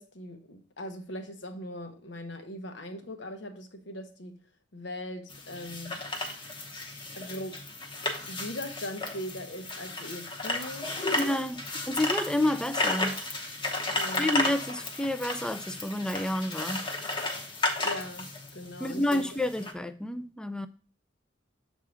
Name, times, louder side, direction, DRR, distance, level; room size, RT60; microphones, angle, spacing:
voice 1, 0.0-4.4 4.7-6.0 7.1-7.6 8.3-11.3 13.9-14.6 17.8-19.2, left 1 dB, 65° left, 1.0 m, -40 dB
sound 1, 5.3-19.7, left 2 dB, 25° left, 0.9 m, -33 dB
voice 2, 11.2-13.2 14.2-16.8 18.8-20.7, left 1 dB, 5° left, 0.3 m, -29 dB
7.0 x 3.7 x 4.8 m
head